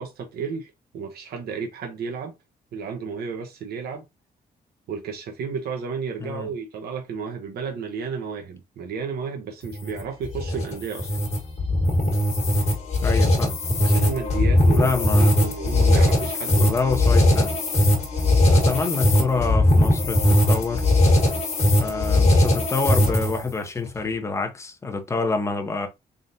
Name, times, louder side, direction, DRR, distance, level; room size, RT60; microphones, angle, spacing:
voice 1, 0.0-2.3 2.7-4.0 4.9-11.2 13.8-16.9, right 5 dB, 80° right, 0.9 m, -32 dB
sound 1, 9.6-23.5, left 1 dB, 40° left, 1.5 m, -19 dB
voice 2, 13.0-13.6 14.7-15.3 16.6-17.5 18.5-20.2 20.5-20.8 21.8-25.9, left 4 dB, 15° left, 0.7 m, -27 dB
3.9 x 3.7 x 2.6 m
wide cardioid pair, 170°, 16 cm